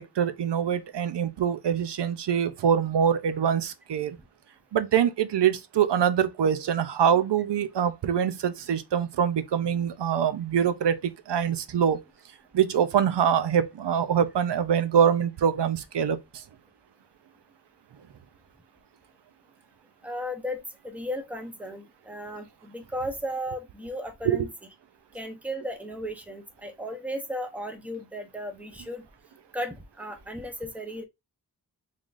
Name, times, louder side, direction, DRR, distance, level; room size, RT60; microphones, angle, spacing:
voice 1, 0.2-4.2 4.7-12.0 12.5-16.4 24.3-24.5, right 8 dB, 80° right, 0.5 m, -24 dB
voice 2, 20.0-24.5 25.1-29.0 29.5-31.0, equal, 5° right, 0.7 m, -35 dB
3.7 x 3.4 x 2.5 m
wide cardioid pair, 90°, 41 cm